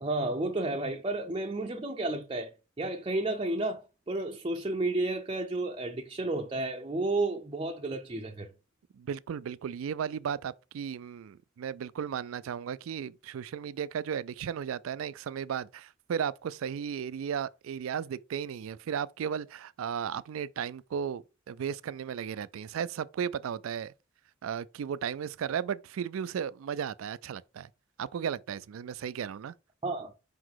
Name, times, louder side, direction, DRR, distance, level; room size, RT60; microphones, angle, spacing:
voice 1, 0.0-2.5 2.8-8.5 29.8-30.1, right 2 dB, 25° right, 0.6 m, -32 dB
voice 2, 8.9-23.9 24.4-27.7 28.0-29.5, right 8 dB, 75° right, 0.3 m, -35 dB
5.2 x 4.0 x 4.6 m
head